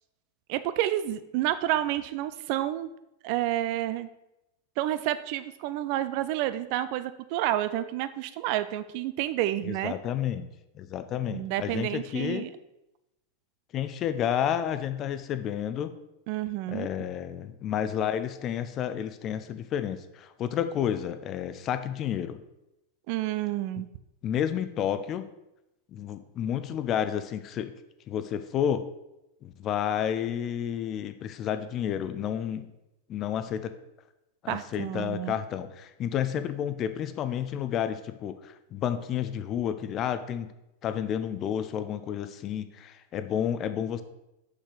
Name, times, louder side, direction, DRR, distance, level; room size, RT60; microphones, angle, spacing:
voice 1, 0.5-2.9 3.2-4.1 4.8-9.9 11.3-12.5 16.3-16.9 23.1-23.9 34.5-35.4, right 13 dB, 45° right, 13 dB, 0.4 m, -29 dB
voice 2, 9.6-10.5 10.7-12.4 13.7-15.9 16.7-22.4 24.2-25.3 25.9-27.7 28.1-28.9 29.4-32.7 33.1-33.7 34.4-40.5 40.8-44.0, left 9 dB, 30° left, 11 dB, 0.5 m, -30 dB
6.4 x 6.2 x 3.9 m, 0.89 s
figure-of-eight pair, 90°, 0 cm